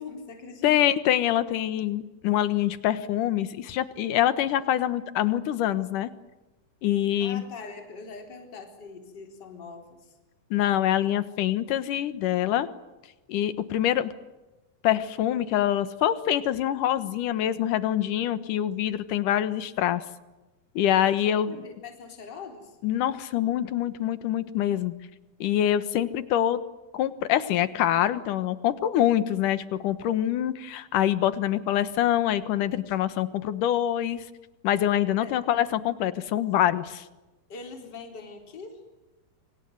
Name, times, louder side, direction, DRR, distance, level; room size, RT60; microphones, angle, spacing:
voice 1, 0.0-0.8 7.2-10.2 21.0-22.8 35.2-35.4 37.5-38.8, left 4 dB, 30° left, 3 dB, 4.5 m, -42 dB
voice 2, 0.6-6.1 6.8-7.4 10.5-12.7 13.3-14.1 14.8-20.0 20.8-21.6 22.8-24.9 25.4-26.6 26.9-34.2 34.6-37.0, left 11 dB, 70° left, 13 dB, 2.8 m, -25 dB
28.0 x 25.5 x 7.9 m, 1.1 s
omnidirectional pair, 4.1 m